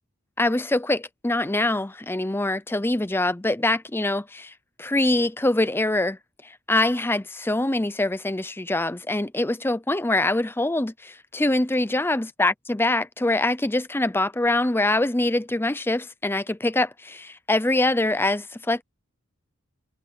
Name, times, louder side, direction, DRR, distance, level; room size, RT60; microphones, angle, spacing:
voice 1, 0.4-6.2 6.4-18.8, left 2 dB, 10° left, 0.6 m, -24 dB
head